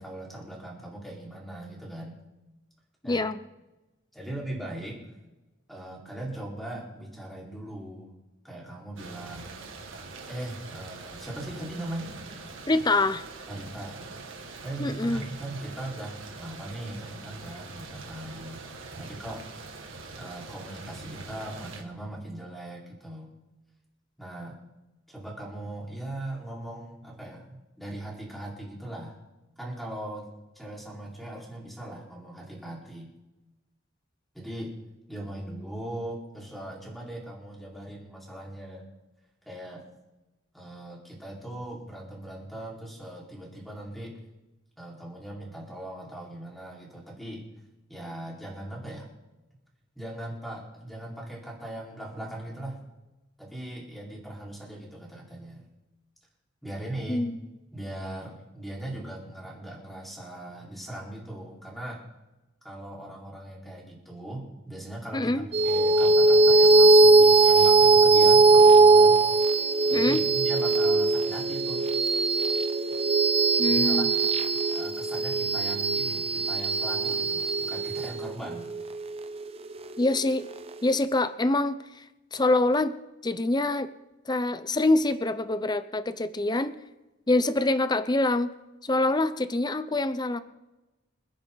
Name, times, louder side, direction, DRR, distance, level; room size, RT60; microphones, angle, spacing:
voice 1, 0.0-2.2 3.0-3.2 4.1-5.0 5.7-8.1 8.4-9.5 10.3-12.1 13.5-14.2 14.6-18.7 19.0-19.4 20.2-23.3 24.2-24.6 25.1-29.2 29.6-30.3 30.5-33.1 34.3-34.7 35.1-38.8 39.4-39.8 40.5-44.2 44.8-47.4 47.9-49.1 49.9-52.8 53.4-55.7 56.6-57.2 57.7-62.0 62.6-69.2 69.9-71.9 73.6-74.1 74.7-78.7, right 1 dB, ahead, -4 dB, 4.6 m, -39 dB
voice 2, 3.1-3.4 12.7-13.2 14.8-15.2 57.1-57.4 65.1-65.5 69.9-70.2 73.6-74.1 80.0-80.5 80.8-82.0 82.3-83.0 83.2-83.9 84.3-86.7 87.3-88.5 88.8-90.4, left 2 dB, 20° left, 12 dB, 0.6 m, -25 dB
sound 1, 9.0-21.8, right 3 dB, 75° right, 2.2 m, -43 dB
sound 2, 65.5-80.3, right 3 dB, 30° right, 0.7 m, -20 dB
27.5 x 10.0 x 4.0 m, 1.0 s
head